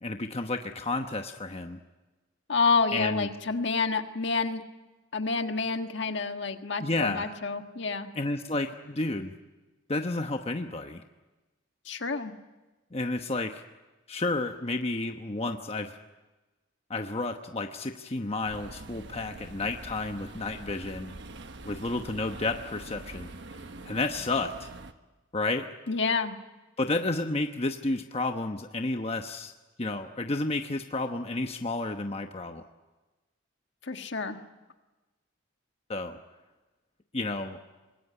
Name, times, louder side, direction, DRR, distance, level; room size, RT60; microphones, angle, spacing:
voice 1, 0.0-1.8 2.9-3.3 6.8-7.3 8.1-9.3 9.9-11.0 12.9-13.6 14.1-15.9 16.9-21.1 21.6-23.3 23.8-24.7 25.3-25.7 26.8-29.5 29.8-32.6 35.9-36.2 37.1-37.6, left 2 dB, 30° left, 5 dB, 1.0 m, -31 dB
voice 2, 2.5-4.6 5.1-8.1 11.8-12.3 25.9-26.3 33.8-34.4, left 4 dB, 60° left, 6 dB, 1.6 m, -28 dB
sound 1, 18.4-24.9, right 2 dB, 60° right, 1.2 m, -44 dB
25.0 x 20.5 x 9.9 m, 1.2 s
head